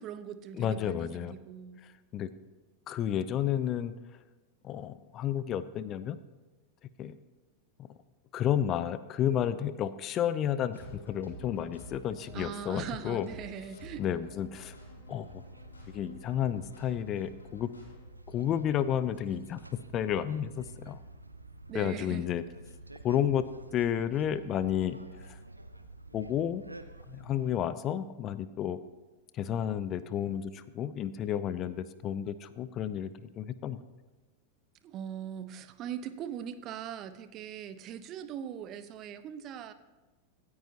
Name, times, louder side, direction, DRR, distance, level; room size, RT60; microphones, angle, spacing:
voice 1, 0.0-1.8 12.3-14.1 21.7-22.3 34.8-39.7, right 9 dB, 35° right, 12 dB, 0.7 m, -41 dB
voice 2, 0.6-1.3 2.1-2.3 2.9-3.9 4.6-6.2 7.0-7.2 7.8-7.9 8.3-13.3 14.0-14.8 15.1-15.4 15.9-17.7 18.3-19.6 19.9-21.0 21.7-22.4 23.0-23.4 23.7-25.0 25.2-25.4 26.1-26.6 27.1-28.8 29.3-33.8, left 10 dB, 30° left, 14 dB, 0.6 m, -31 dB
sound 1, 10.7-18.0, left 1 dB, 75° left, 4.2 m, -50 dB
sound 2, 14.6-27.5, right 2 dB, 85° right, 0.7 m, -49 dB
25.0 x 9.6 x 2.9 m, 1.2 s
figure-of-eight pair, 90°, 0 cm